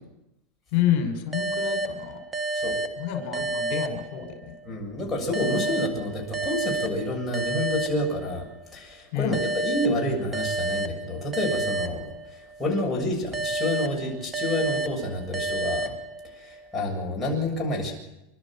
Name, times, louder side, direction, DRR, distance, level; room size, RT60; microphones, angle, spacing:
voice 1, 0.7-2.2 3.0-4.5 9.1-9.4, left 10 dB, 50° left, 5 dB, 5.8 m, -28 dB
sound 1, 1.3-4.7 5.3-8.6 9.3-12.7 13.3-16.6, right 2 dB, 15° right, 1.3 m, -31 dB
voice 2, 4.7-8.4 8.7-15.9 16.2-17.9, left 1 dB, 5° left, -3 dB, 7.1 m, -29 dB
29.0 x 12.5 x 7.6 m, 0.91 s
supercardioid pair, 155°, 0 cm